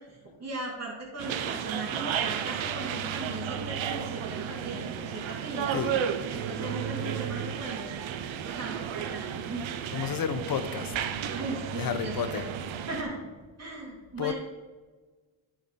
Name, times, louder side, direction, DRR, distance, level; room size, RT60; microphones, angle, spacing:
voice 1, 0.0-5.8 6.3-7.9 8.4-9.6 11.3-12.5 12.8-13.2 13.6-14.3, right 2 dB, 30° right, -4 dB, 2.5 m, -38 dB
sound 1, 1.2-13.0, right 8 dB, 65° right, 0.8 m, -33 dB
voice 2, 9.9-10.9 11.7-12.5 14.2-14.3, left 8 dB, 45° left, 10 dB, 0.7 m, -31 dB
10.5 x 4.6 x 4.1 m, 1.3 s
cardioid pair, 65°, 50 cm